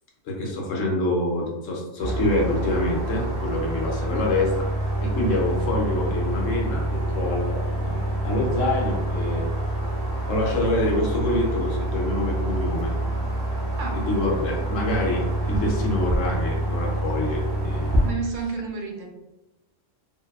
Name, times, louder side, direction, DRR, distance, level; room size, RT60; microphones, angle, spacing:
voice 1, 0.2-4.5 5.0-9.5 10.3-13.0 13.9-18.0, left 2 dB, 80° left, -1 dB, 1.0 m, -26 dB
sound 1, 2.0-18.1, right 1 dB, 25° right, 0.7 m, -27 dB
voice 2, 18.0-19.1, right 4 dB, 75° right, 1 dB, 0.9 m, -31 dB
2.6 x 2.2 x 2.3 m, 1.0 s
omnidirectional pair, 1.3 m